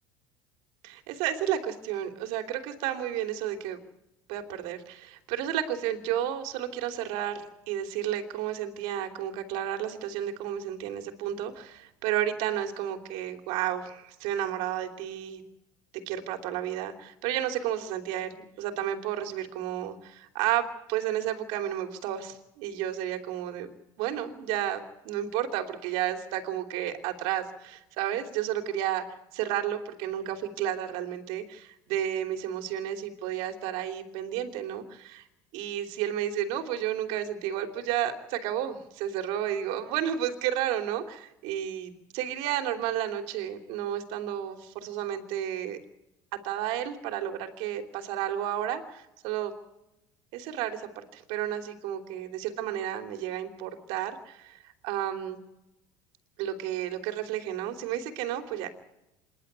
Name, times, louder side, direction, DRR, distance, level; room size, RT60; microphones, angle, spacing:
voice 1, 0.8-3.8 4.3-15.4 15.9-23.7 24.0-29.0 29.3-35.2 35.5-45.8 46.4-49.5 50.3-55.4 56.4-58.7, right 11 dB, 65° right, 5 dB, 3.1 m, -32 dB
27.0 x 11.5 x 9.5 m, 0.91 s
cardioid pair, 165°, 10 cm